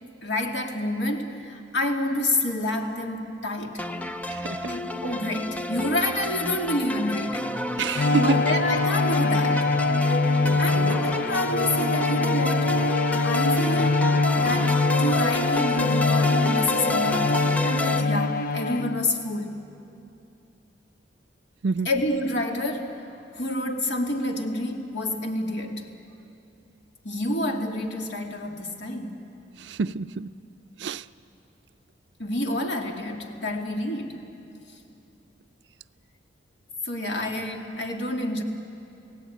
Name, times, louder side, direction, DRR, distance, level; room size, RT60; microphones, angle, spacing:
voice 1, 0.2-3.8 4.6-7.6 8.1-9.7 10.6-12.8 13.2-14.0 14.4-19.6 21.8-23.1 23.3-25.9 27.0-29.4 32.2-34.3 36.8-38.4, left 1 dB, 70° left, 2 dB, 2.5 m, -28 dB
sound 1, 3.8-18.0, left 1 dB, 10° left, 0.6 m, -30 dB
voice 2, 4.3-4.7 7.8-8.4 10.5-10.9 21.6-21.9 29.6-30.3 30.8-31.0, right 4 dB, 70° right, 14 dB, 0.5 m, -28 dB
sound 2, 7.8-8.9 9.1-9.2, right 4 dB, 25° right, 1.8 m, -45 dB
Bowed string instrument, 7.9-19.2, left 3 dB, 55° left, 0.8 m, -23 dB
29.0 x 17.0 x 9.3 m, 2.7 s
head